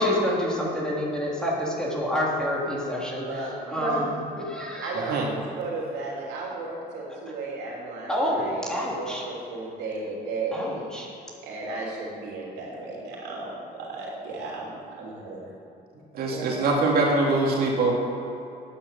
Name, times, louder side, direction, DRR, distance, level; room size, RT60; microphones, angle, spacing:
voice 1, 0.0-5.2 7.1-7.2 8.1-9.3 10.5-11.1, left 1 dB, 5° left, -4 dB, 3.1 m, -28 dB
voice 2, 3.1-4.0 4.8-10.8 11.4-15.4 16.3-16.6, right 3 dB, 85° right, -3 dB, 3.4 m, -34 dB
voice 3, 4.9-5.3 16.1-17.9, right 3 dB, 65° right, -2 dB, 2.5 m, -23 dB
10.0 x 9.8 x 7.0 m, 2.8 s
cardioid pair, 110°, 17 cm